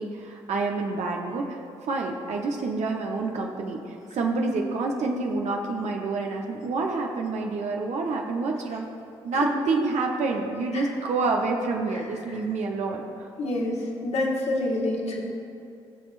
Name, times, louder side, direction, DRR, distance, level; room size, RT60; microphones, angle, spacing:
voice 1, 0.0-1.6 1.9-8.9 9.2-13.0, right 3 dB, 60° right, 1 dB, 0.9 m, -28 dB
voice 2, 11.9-12.4 13.4-15.2, left 2 dB, 55° left, -2 dB, 1.8 m, -28 dB
18.5 x 6.2 x 2.6 m, 2.6 s
hypercardioid pair, 40°, 13 cm